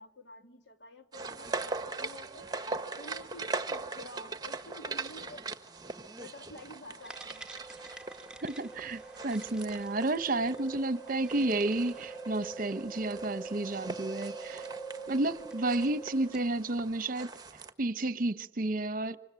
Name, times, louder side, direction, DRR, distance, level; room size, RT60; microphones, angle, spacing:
voice 1, 0.0-2.5 3.0-5.5 6.2-7.5, left 1 dB, 85° left, 3.0 m, -50 dB
sound 1, 1.1-17.7, right 3 dB, 20° right, 1.4 m, -41 dB
sound 2, 7.0-16.6, right 3 dB, 5° right, 1.7 m, -44 dB
voice 2, 8.4-14.7 15.1-19.2, right 2 dB, 50° right, 1.0 m, -31 dB
28.0 x 25.5 x 7.7 m
head